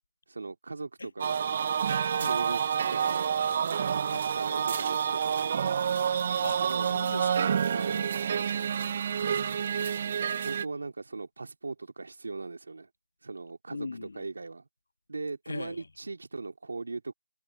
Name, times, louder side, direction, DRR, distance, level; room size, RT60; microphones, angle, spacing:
voice 1, 0.3-1.4 2.2-3.3 3.6-5.8 6.6-7.0 7.7-8.0 10.4-12.9 13.2-14.6 15.1-17.1, right 3 dB, 50° right, 3.3 m, -39 dB
sound 1, 1.2-10.6, right 7 dB, 20° right, 0.4 m, -28 dB
voice 2, 4.0-4.3 6.4-7.6 7.9-8.4 9.2-9.6 13.7-14.3 15.5-15.9, left 3 dB, 50° left, 1.5 m, -41 dB
figure-of-eight pair, 180°, 0 cm